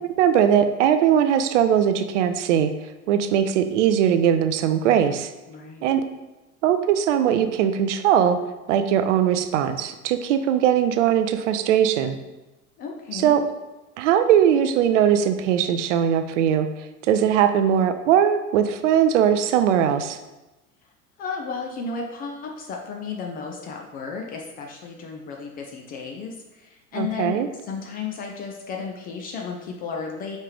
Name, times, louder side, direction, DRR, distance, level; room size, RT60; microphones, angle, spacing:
voice 1, 0.0-2.7 3.1-5.3 5.8-6.0 6.6-8.4 8.7-12.2 13.1-13.4 14.0-16.7 17.1-20.2 26.9-27.5, right 9 dB, 55° right, 9 dB, 0.5 m, -20 dB
voice 2, 5.5-6.0 12.8-13.4 21.2-30.4, left 5 dB, 25° left, 1 dB, 0.3 m, -33 dB
5.1 x 3.2 x 3.3 m, 1.1 s
figure-of-eight pair, 75°, 44 cm